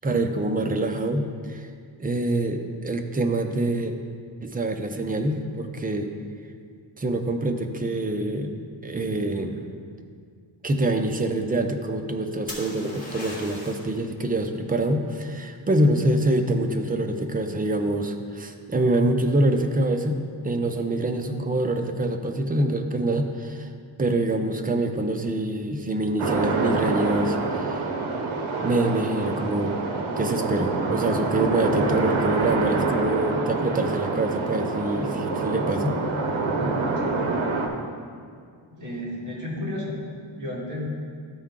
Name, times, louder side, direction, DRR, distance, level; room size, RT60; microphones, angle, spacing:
voice 1, 0.0-1.7 2.0-3.9 4.4-6.1 7.0-8.5 8.8-9.6 10.6-23.7 24.0-27.8 28.6-29.8 30.2-35.9, right 1 dB, 20° right, 5 dB, 0.4 m, -25 dB
sound 1, 12.5-13.9 17.6-18.1, left 1 dB, 15° left, 1.6 m, -38 dB
sound 2, 26.2-37.7, right 3 dB, 75° right, 0.9 m, -26 dB
voice 2, 36.5-37.5 38.7-40.9, left 1 dB, 40° right, -5 dB, 2.1 m, -33 dB
12.5 x 4.5 x 3.7 m, 2.1 s
wide cardioid pair, 150°, 47 cm